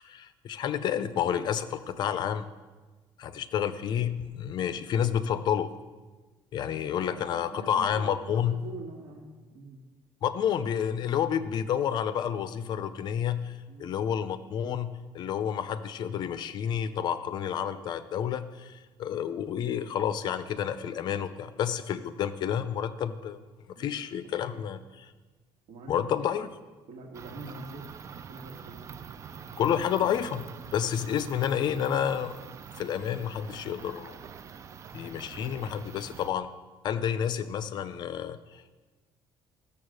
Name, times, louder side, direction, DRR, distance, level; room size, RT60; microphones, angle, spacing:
voice 1, 0.0-2.5 3.2-5.7 6.5-8.6 10.2-23.4 23.8-24.8 25.9-26.5 29.6-30.4 30.7-32.4 32.8-34.2 34.9-36.5 36.8-38.8, left 9 dB, 50° left, 12 dB, 0.6 m, -30 dB
voice 2, 6.7-9.8 13.7-13.9 23.8-24.0 24.2-24.6 25.7-26.1 26.9-28.0 28.3-28.9 30.6-30.8, right 3 dB, 75° right, -2 dB, 1.9 m, -45 dB
sound 1, 27.1-36.3, right 7 dB, 30° right, 0.4 m, -45 dB
14.5 x 7.1 x 6.5 m, 1.3 s
cardioid pair, 160°, 9 cm